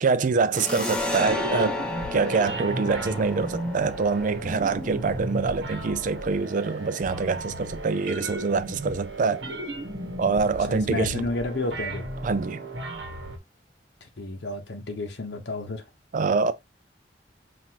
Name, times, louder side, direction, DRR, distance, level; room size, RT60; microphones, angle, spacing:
voice 1, 0.0-1.8 2.1-9.4 10.2-11.3 12.2-12.6 16.1-16.5, right 4 dB, 45° right, 0.4 m, -25 dB
sound 1, 0.5-7.7, left 2 dB, 5° left, 0.7 m, -34 dB
sound 2, 1.0-13.4, right 1 dB, 85° right, 1.0 m, -35 dB
voice 2, 10.7-12.1 14.2-15.8, left 2 dB, 70° left, 0.9 m, -31 dB
5.8 x 2.6 x 2.9 m
head